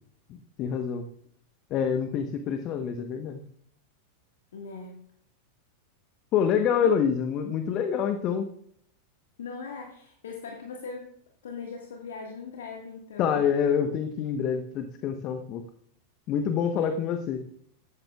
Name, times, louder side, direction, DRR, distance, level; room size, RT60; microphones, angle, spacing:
voice 1, 0.6-1.1 1.7-3.4 6.3-8.5 13.2-15.6 16.3-17.4, left 7 dB, 35° left, 7 dB, 1.1 m, -26 dB
voice 2, 4.5-5.0 6.8-6.9 9.4-11.1 11.4-13.5 16.7-16.9, left 5 dB, 60° left, 1 dB, 1.7 m, -40 dB
16.5 x 13.5 x 2.4 m, 0.66 s
figure-of-eight pair, 90°, 0 cm